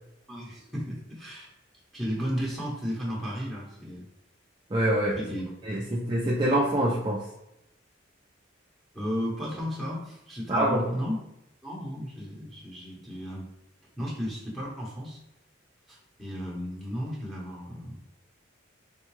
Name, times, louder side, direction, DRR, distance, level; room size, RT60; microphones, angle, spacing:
voice 1, 0.3-1.5 1.9-4.1 5.2-5.5 8.9-11.2 11.6-13.5 14.0-15.2 15.9-18.0, equal, ahead, -6 dB, 0.9 m, -34 dB
voice 2, 4.7-5.2 5.6-7.2 10.5-10.8, right 1 dB, 25° right, -4 dB, 0.4 m, -25 dB
3.6 x 2.2 x 3.0 m, 0.86 s
head